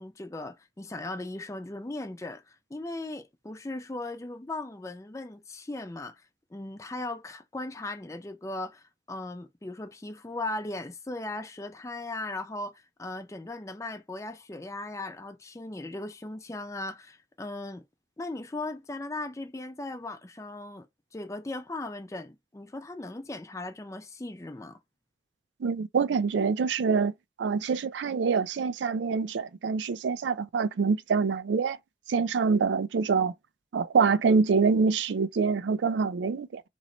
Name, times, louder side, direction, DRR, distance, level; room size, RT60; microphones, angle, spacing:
voice 1, 0.0-17.8 18.2-20.9 21.1-24.8, left 2 dB, 15° left, 0.4 m, -38 dB
voice 2, 25.6-31.8 32.1-33.3 33.7-36.6, right 5 dB, 85° right, 0.4 m, -25 dB
3.0 x 2.6 x 4.1 m
head